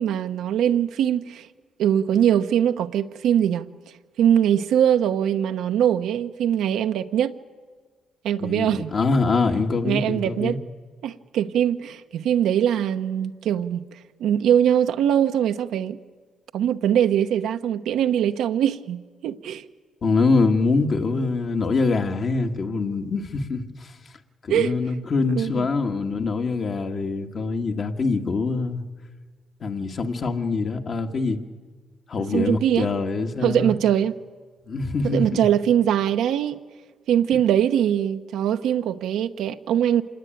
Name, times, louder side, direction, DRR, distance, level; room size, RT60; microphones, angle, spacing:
voice 1, 0.0-1.5 1.8-3.7 4.2-7.3 8.2-8.9 9.8-10.6 11.0-13.8 14.2-16.0 16.5-19.6 24.5-24.7 25.3-25.7 32.3-32.9 33.4-34.2 35.0-36.6 37.1-40.0, right 10 dB, 80° right, 1.0 m, -22 dB
voice 2, 8.4-10.6 20.0-23.9 24.4-28.8 29.6-31.4 32.1-33.7 34.7-35.5, left 3 dB, 50° left, 1.8 m, -24 dB
26.5 x 19.5 x 9.2 m
cardioid pair, 90°, 0 cm